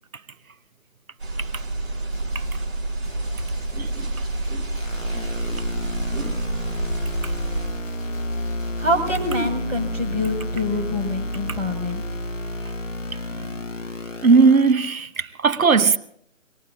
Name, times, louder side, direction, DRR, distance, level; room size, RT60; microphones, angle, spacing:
sound 1, 1.2-7.7, right 2 dB, 50° right, 4.5 m, -28 dB
sound 2, 2.1-2.7 3.0-9.5, left 3 dB, 25° left, 7.7 m, -37 dB
sound 3, 4.8-14.7, left 1 dB, 65° left, 1.5 m, -31 dB
voice 1, 5.1-5.5 6.1-6.4 14.2-16.0, right 4 dB, 85° right, 1.0 m, -19 dB
voice 2, 8.8-12.0, left 1 dB, 5° right, 2.0 m, -25 dB
25.0 x 20.5 x 2.5 m
figure-of-eight pair, 175°, 41 cm